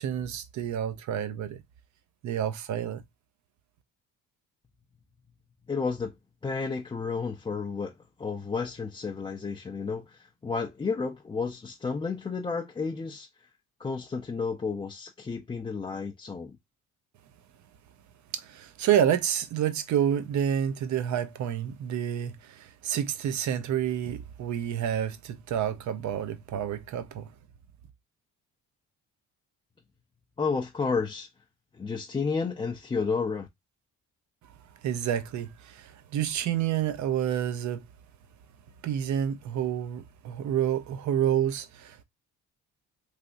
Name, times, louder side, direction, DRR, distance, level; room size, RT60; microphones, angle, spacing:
voice 1, 0.0-1.6 2.2-3.0 18.3-27.3 34.8-37.8 38.8-42.0, right 9 dB, 60° right, 0.7 m, -29 dB
voice 2, 5.7-6.1 6.4-7.9 8.2-13.3 13.8-16.6 30.4-31.3 31.7-33.5, left 5 dB, 15° left, 0.4 m, -31 dB
3.4 x 2.7 x 2.5 m
cardioid pair, 100°, 32 cm